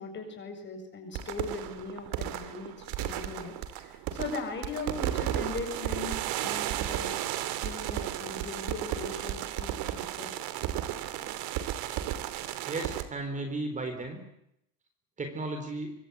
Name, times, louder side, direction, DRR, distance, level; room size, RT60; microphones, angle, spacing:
voice 1, 0.0-7.2 7.6-10.4, left 4 dB, 25° left, 5 dB, 7.9 m, -39 dB
sound 1, 1.1-13.0, right 12 dB, 55° right, 3.1 m, -34 dB
voice 2, 12.7-14.2 15.2-15.9, right 2 dB, 15° right, 6 dB, 3.9 m, -34 dB
25.0 x 24.0 x 8.4 m, 0.77 s
cardioid pair, 160°, 43 cm